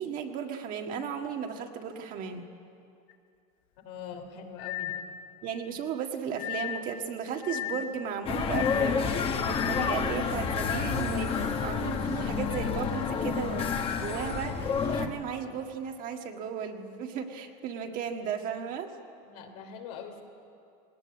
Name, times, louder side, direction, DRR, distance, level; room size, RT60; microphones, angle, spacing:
voice 1, 0.0-2.5 5.4-18.9, right 7 dB, 45° right, 4 dB, 1.8 m, -35 dB
sound 1, 3.1-3.2 4.6-5.1 6.4-6.9 7.4-8.0 8.5-9.0 9.5-10.0, left 12 dB, 65° left, 1.2 m, -35 dB
voice 2, 3.8-5.0 19.2-20.2, left 6 dB, 80° left, 4 dB, 3.1 m, -43 dB
sound 2, 8.3-15.1, left 6 dB, 30° left, 1.5 m, -29 dB
19.5 x 18.5 x 9.8 m, 2.5 s
supercardioid pair, 145°, 20 cm